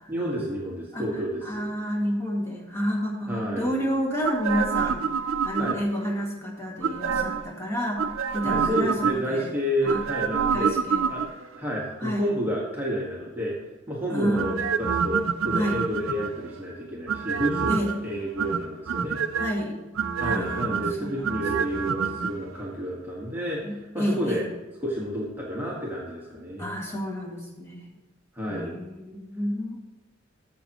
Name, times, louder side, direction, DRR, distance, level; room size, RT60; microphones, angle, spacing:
voice 1, 0.1-1.9 3.3-3.8 5.6-5.8 8.4-10.7 11.1-11.2 11.5-13.6 13.9-19.2 20.2-24.4 24.8-26.7 28.3-28.7, equal, 10° right, -5 dB, 1.5 m, -30 dB
voice 2, 1.4-9.5 9.8-10.0 10.5-11.0 12.0-12.3 14.1-14.5 15.5-15.8 17.7-18.0 19.3-19.7 20.2-21.9 23.6-24.5 26.6-27.9 28.5-29.8, equal, 15° left, -3 dB, 2.1 m, -30 dB
sound 1, 4.2-6.1 6.8-7.5 8.0-9.4 9.9-11.6 14.4-16.5 17.1-18.0 18.4-19.5 20.0-22.3 22.6-22.7, right 6 dB, 85° right, 0.5 m, -27 dB
14.0 x 7.4 x 3.0 m, 1.1 s
head